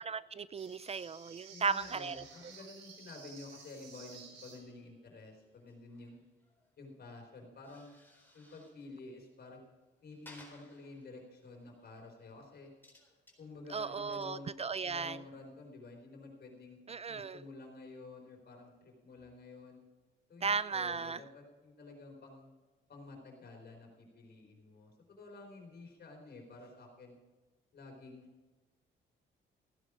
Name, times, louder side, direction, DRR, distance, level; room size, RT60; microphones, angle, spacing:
voice 1, 0.0-2.2 13.7-15.2 16.9-17.4 20.4-21.2, right 5 dB, 30° right, 17 dB, 0.4 m, -36 dB
sound 1, 0.5-4.9, right 5 dB, 75° right, 3.5 m, -54 dB
voice 2, 1.5-6.2 6.8-7.9 8.3-9.6 10.0-12.7 13.4-14.5 14.8-16.8 17.1-19.8 20.3-22.5 22.9-27.2 27.7-28.3, left 3 dB, 55° left, 2 dB, 4.3 m, -51 dB
sound 2, 5.4-7.1 7.4-9.0 9.2-9.7 10.0-12.0 12.5-16.0, left 2 dB, 10° left, 4.2 m, -62 dB
16.0 x 10.0 x 5.0 m, 1.2 s
cardioid pair, 90°, 20 cm